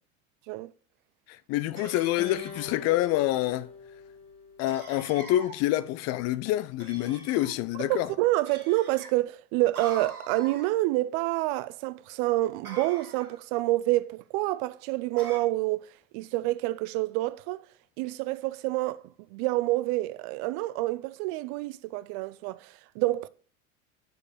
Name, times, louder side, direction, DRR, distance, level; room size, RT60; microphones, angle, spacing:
voice 1, 1.5-3.7 4.6-8.1, left 15 dB, 40° left, 0.5 m, -27 dB
sound 1, 1.8-2.8 4.7-5.6 6.8-7.5 8.4-9.1 9.7-10.7 12.6-13.4 15.2-15.4, right 4 dB, 90° right, 1.4 m, -43 dB
Acoustic guitar, 2.2-5.5, left 5 dB, 15° left, 1.6 m, -45 dB
voice 2, 7.8-15.9 16.1-17.6 18.0-19.0 19.3-23.3, right 18 dB, 45° right, 0.5 m, -28 dB
6.6 x 4.8 x 5.0 m
figure-of-eight pair, 75°, 42 cm